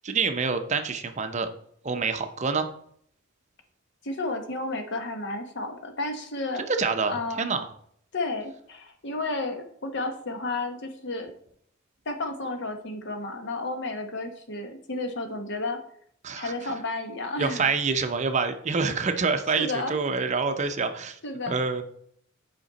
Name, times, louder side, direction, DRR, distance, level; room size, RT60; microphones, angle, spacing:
voice 1, 0.0-1.5 1.8-2.7 6.7-7.6 16.2-16.5 17.4-21.2 21.5-21.8, right 4 dB, 35° right, 7 dB, 0.6 m, -26 dB
voice 2, 4.0-6.6 7.1-7.5 8.1-11.3 12.0-15.8 16.3-17.7 19.6-19.9 21.2-21.6, left 2 dB, 55° left, 5 dB, 1.0 m, -32 dB
9.0 x 5.1 x 4.0 m, 0.67 s
head